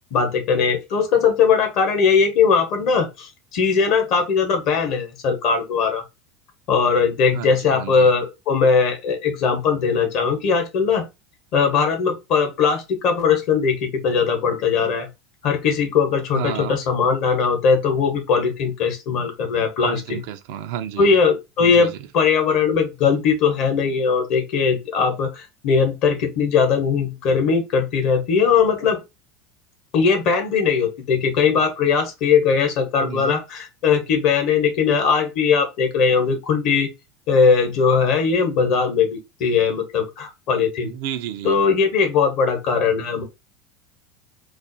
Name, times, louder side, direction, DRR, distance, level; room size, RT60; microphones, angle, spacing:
voice 1, 0.1-6.0 6.7-11.0 11.5-15.1 15.4-20.2 21.0-29.0 29.9-36.9 37.3-40.9 41.4-43.2, left 5 dB, 55° left, 0.8 m, -19 dB
voice 2, 7.3-8.1 16.3-16.8 19.8-21.2 21.6-22.0 33.0-33.4 40.8-41.6, right 10 dB, 65° right, 0.4 m, -31 dB
2.4 x 2.0 x 2.6 m
hypercardioid pair, 80°, 0 cm